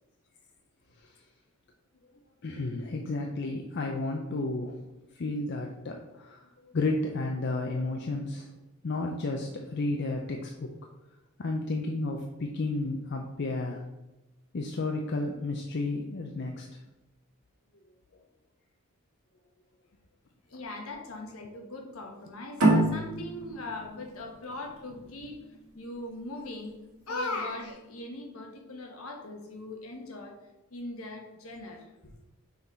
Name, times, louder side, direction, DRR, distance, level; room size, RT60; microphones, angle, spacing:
voice 1, 2.4-4.8 5.1-8.5 8.8-10.7 11.4-13.8 14.5-16.7, left 2 dB, 50° left, 2 dB, 0.5 m, -32 dB
voice 2, 20.5-25.4 25.7-26.7 27.1-30.4 30.7-32.1, left 2 dB, 70° left, 2 dB, 1.2 m, -39 dB
sound 1, 22.6-25.8, right 1 dB, 75° right, 1.7 m, -27 dB
5.8 x 3.9 x 4.3 m, 0.99 s
head